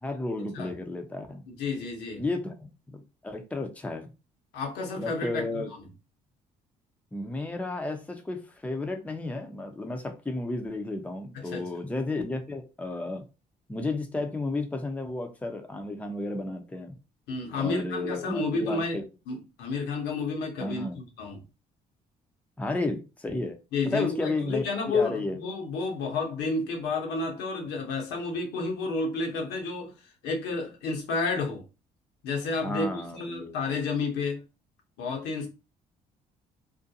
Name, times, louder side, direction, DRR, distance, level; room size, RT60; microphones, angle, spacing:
voice 1, 0.0-1.4 2.2-4.1 5.0-5.7 7.1-13.2 13.7-16.9 17.5-19.0 20.6-21.0 22.6-23.6 23.9-25.4 32.6-33.6, left 2 dB, 10° left, 0.6 m, -33 dB
voice 2, 1.5-2.2 4.5-5.6 11.3-11.6 17.3-19.0 19.3-21.5 23.7-31.6 32.2-34.4 35.0-35.5, left 4 dB, 75° left, 0.9 m, -31 dB
2.5 x 2.1 x 2.7 m
supercardioid pair, 65°, 18 cm